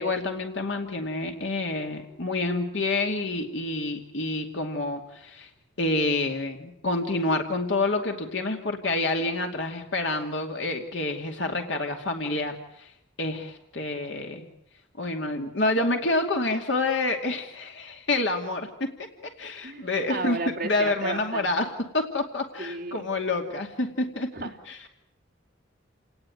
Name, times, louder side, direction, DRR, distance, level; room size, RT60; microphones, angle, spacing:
voice 1, 0.0-5.5 5.8-12.9 13.2-14.4 15.0-18.9 19.2-24.3 24.7-24.8, left 2 dB, 70° left, 3 dB, 2.5 m, -28 dB
voice 2, 19.6-21.5 22.6-23.1 24.3-24.6 24.8-24.9, right 3 dB, 50° right, 0 dB, 3.5 m, -33 dB
29.5 x 18.5 x 9.4 m, 0.76 s
head